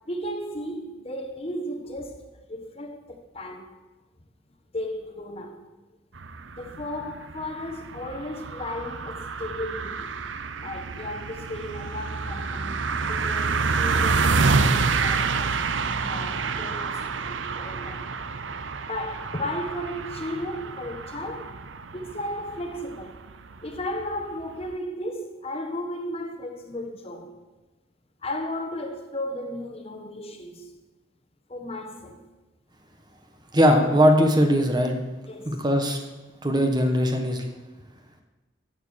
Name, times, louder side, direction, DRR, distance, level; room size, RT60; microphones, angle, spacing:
voice 1, 0.0-3.7 4.7-5.7 6.6-10.2 10.6-18.1 18.8-21.6 21.9-23.2 23.6-27.3 28.2-30.7 31.5-32.2 35.3-35.6, left 1 dB, 30° left, 1.3 m, -35 dB
sound 1, 6.1-24.7, right 4 dB, 80° right, 0.8 m, -28 dB
voice 2, 33.5-35.0 35.4-36.0 36.4-37.4, equal, 20° right, 1.4 m, -20 dB
15.0 x 8.8 x 6.5 m
head